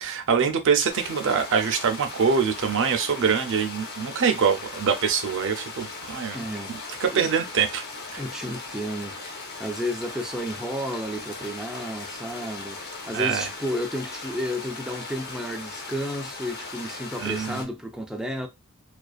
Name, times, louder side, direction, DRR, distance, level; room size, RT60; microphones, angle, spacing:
voice 1, 0.0-6.4 6.7-7.8 8.1-8.2 13.1-13.5 17.2-17.6, right 6 dB, 60° right, 0.5 m, -24 dB
sound 1, 0.9-17.6, left 3 dB, 50° left, 0.7 m, -38 dB
voice 2, 6.3-6.8 7.1-7.3 8.2-18.5, equal, 5° right, 0.3 m, -32 dB
2.4 x 2.2 x 2.3 m
head